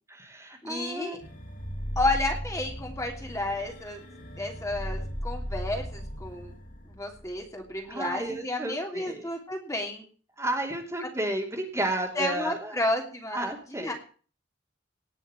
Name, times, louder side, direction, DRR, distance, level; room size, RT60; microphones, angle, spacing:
voice 1, 0.1-1.2 7.8-9.3 10.4-12.7 13.3-13.9, right 1 dB, 15° right, 2 dB, 2.9 m, -32 dB
voice 2, 0.6-1.2 2.0-4.0 4.4-6.5 7.0-10.0 11.0-11.1 12.1-13.9, left 2 dB, 15° left, 2 dB, 2.9 m, -31 dB
sound 1, 1.2-7.9, equal, 45° left, 4.5 m, -37 dB
18.5 x 6.4 x 9.0 m, 0.41 s
head